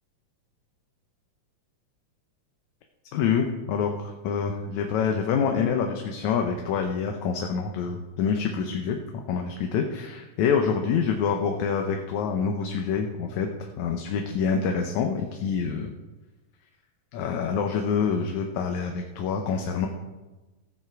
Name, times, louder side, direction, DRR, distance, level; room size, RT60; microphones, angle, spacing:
voice 1, 3.1-15.9 17.1-19.9, left 6 dB, 75° left, 4 dB, 2.1 m, -26 dB
17.0 x 7.2 x 4.6 m, 1.2 s
omnidirectional pair, 3.5 m